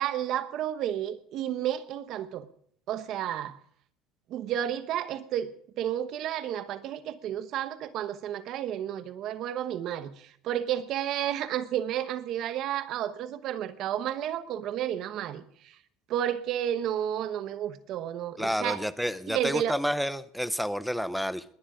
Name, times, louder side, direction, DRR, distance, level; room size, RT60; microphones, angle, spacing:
voice 1, 0.0-2.5 2.9-3.6 4.3-5.5 5.8-15.7 16.1-18.9 19.3-19.8, right 11 dB, 45° right, 12 dB, 1.0 m, -31 dB
voice 2, 18.4-21.4, equal, ahead, 15 dB, 0.5 m, -30 dB
20.0 x 10.0 x 5.0 m, 0.62 s
cardioid pair, 165°, 0 cm